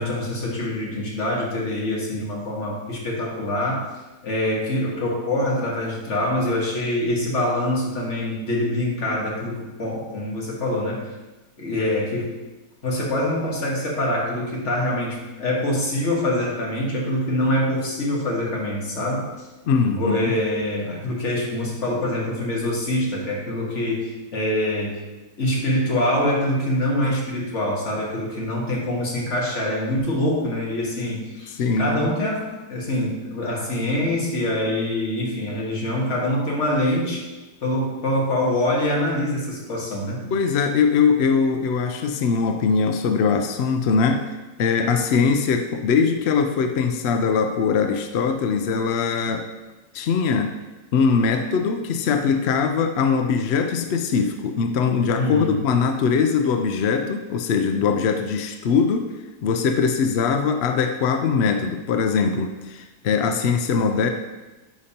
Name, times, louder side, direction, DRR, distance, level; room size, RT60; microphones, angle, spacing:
voice 1, 0.0-3.8 4.2-11.0 11.6-12.3 12.8-19.5 19.9-25.0 25.4-32.4 32.7-37.2 37.6-40.3 55.2-55.6, left 1 dB, 50° left, -3 dB, 1.7 m, -25 dB
voice 2, 19.7-20.4 31.6-32.1 40.3-44.2 44.6-49.5 49.9-50.5 50.9-59.1 59.4-64.1, left 5 dB, 75° left, 6 dB, 0.6 m, -21 dB
9.5 x 5.2 x 2.8 m, 1.1 s
omnidirectional pair, 1.7 m